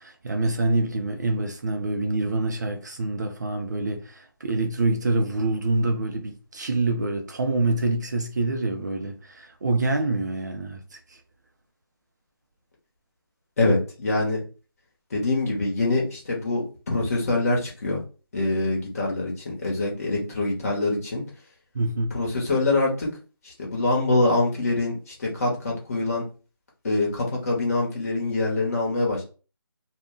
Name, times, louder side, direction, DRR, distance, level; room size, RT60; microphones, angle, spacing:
voice 1, 0.0-11.2 21.7-22.2, right 2 dB, 50° right, 0.4 m, -26 dB
voice 2, 13.6-14.4 15.1-18.0 18.3-21.2 22.1-23.1 23.4-26.2 26.8-29.2, left 2 dB, 40° left, 0.9 m, -24 dB
2.3 x 2.1 x 3.6 m
figure-of-eight pair, 170°, 13 cm